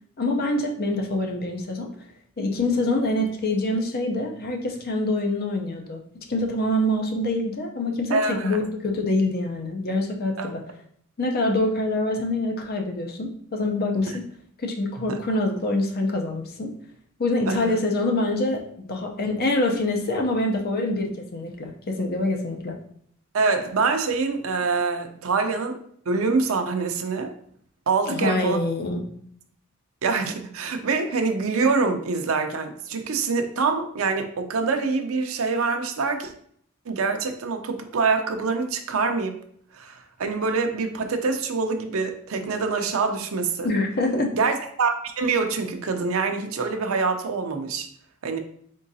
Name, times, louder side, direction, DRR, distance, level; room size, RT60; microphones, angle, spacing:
voice 1, 0.2-1.9 2.4-10.6 11.2-14.2 14.6-16.7 17.2-22.8 28.0-29.0 43.6-44.3, left 2 dB, 50° left, 3 dB, 0.6 m, -25 dB
voice 2, 8.1-8.6 10.4-10.5 15.1-15.2 17.5-17.8 23.3-25.8 26.1-27.3 27.9-28.6 30.0-36.3 36.9-39.3 39.7-43.7 44.3-47.9 48.2-48.4, right 4 dB, 75° right, 5 dB, 0.5 m, -25 dB
3.8 x 3.7 x 2.7 m, 0.63 s
head